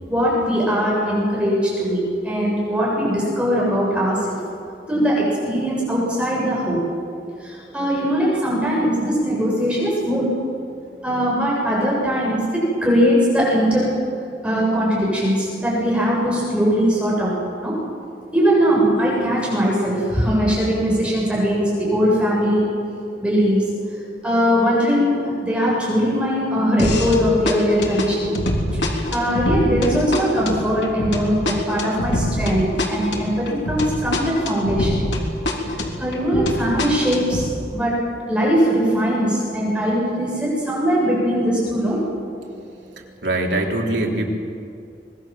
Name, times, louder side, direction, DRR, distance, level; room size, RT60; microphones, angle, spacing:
voice 1, 0.1-4.4 4.9-6.8 7.4-10.2 11.0-13.9 14.4-17.7 18.3-22.7 23.2-28.4 29.1-35.0 35.6-37.9 38.3-42.0, equal, 5° right, -5 dB, 7.4 m, -20 dB
sound 1, 26.8-27.2 27.5-35.2 35.5-37.5, left 1 dB, 80° left, 3.5 m, -24 dB
voice 2, 43.2-44.2, right 2 dB, 75° right, 0 dB, 3.7 m, -22 dB
25.0 x 21.0 x 7.7 m, 2.4 s
head